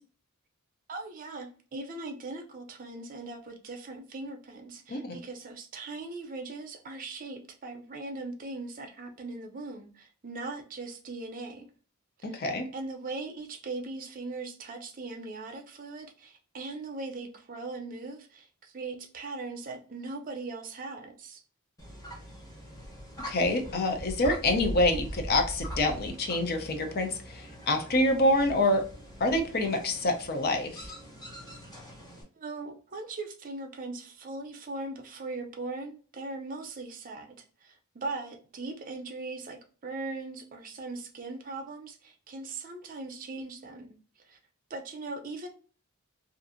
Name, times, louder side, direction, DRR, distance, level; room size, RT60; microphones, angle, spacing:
voice 1, 0.9-11.7 12.3-12.4 12.7-21.4 32.4-39.6 39.8-44.0 44.2-44.4 44.7-45.5, right 3 dB, 40° right, 0.5 m, -39 dB
voice 2, 12.3-12.6 23.3-28.8 29.2-30.9, left 1 dB, 45° left, 0.5 m, -26 dB
sound 1, 21.8-32.2, equal, 15° left, 0.8 m, -42 dB
2.6 x 2.4 x 2.5 m
head